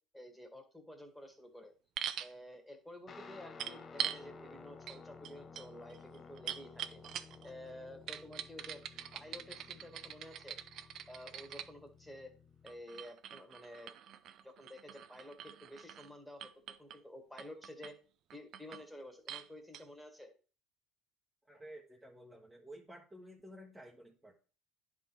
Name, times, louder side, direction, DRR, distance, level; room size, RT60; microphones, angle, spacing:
voice 1, 0.1-1.7 2.2-7.0 7.4-8.8 9.1-10.6 11.1-12.3 12.6-13.9 14.4-16.5 16.8-18.0 18.3-20.3, left 1 dB, 5° left, 5 dB, 1.9 m, -51 dB
sound 1, 2.0-2.3 3.6-4.2 4.9-5.0 5.2-7.5 8.1-11.7 12.7-16.1 16.4-17.0 17.4-17.9 18.3-18.9 19.3-19.5 19.7-19.8, right 10 dB, 55° right, 0.6 m, -43 dB
Guitar, 3.1-12.8, left 5 dB, 35° left, 0.7 m, -55 dB
voice 2, 21.5-24.3, right 1 dB, 10° right, -1 dB, 1.2 m, -53 dB
10.5 x 3.7 x 4.6 m, 0.38 s
supercardioid pair, 90°, 0 cm